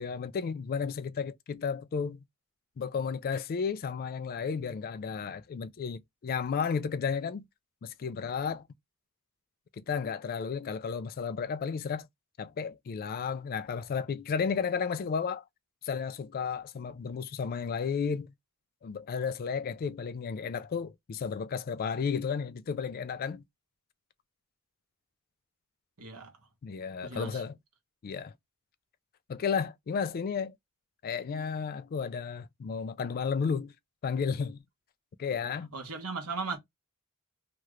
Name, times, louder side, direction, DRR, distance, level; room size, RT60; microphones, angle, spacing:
voice 1, 0.0-2.2 2.8-7.5 7.8-8.7 9.7-12.1 12.4-15.4 15.8-18.3 18.8-23.4 26.6-27.6 28.0-28.3 29.3-30.5 31.0-33.7 34.0-34.6 35.2-35.7, left 6 dB, 45° left, 0.3 m, -33 dB
voice 2, 26.0-26.4 27.0-27.4 35.7-36.6, right 4 dB, 85° right, 1.1 m, -37 dB
2.9 x 2.4 x 3.1 m
head